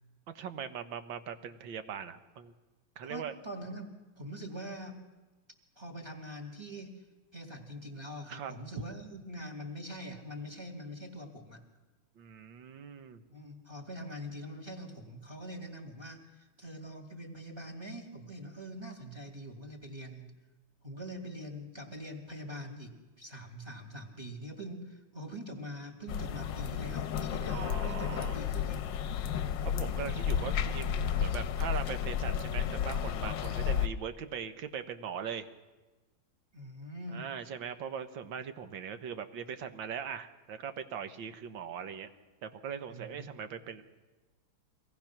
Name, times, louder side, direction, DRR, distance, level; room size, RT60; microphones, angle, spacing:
voice 1, 0.3-2.5 3.0-3.3 8.3-8.5 12.2-13.2 27.5-28.4 29.6-35.5 37.1-42.1 42.4-43.8, right 7 dB, 70° right, 9 dB, 1.7 m, -40 dB
voice 2, 3.0-5.1 5.8-7.0 7.3-11.6 13.3-20.3 20.8-28.9 36.5-37.3 42.9-43.3, equal, 15° right, 2 dB, 2.2 m, -44 dB
sound 1, 26.1-33.9, left 8 dB, 70° left, 1.4 m, -32 dB
24.0 x 18.0 x 5.9 m, 1.2 s
omnidirectional pair, 2.2 m